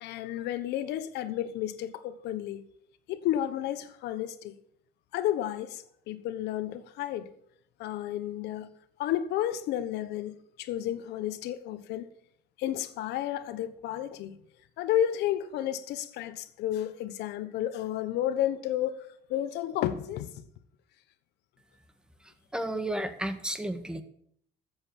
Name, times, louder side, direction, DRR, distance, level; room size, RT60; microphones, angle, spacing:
voice 1, 0.0-2.6 3.1-4.5 5.1-7.3 7.8-8.7 9.0-12.1 12.6-14.4 14.8-20.4, left 11 dB, 85° left, 1.2 m, -32 dB
voice 2, 22.2-24.0, right 1 dB, 5° right, 1.6 m, -33 dB
14.0 x 7.8 x 7.1 m
cardioid pair, 110°, 17 cm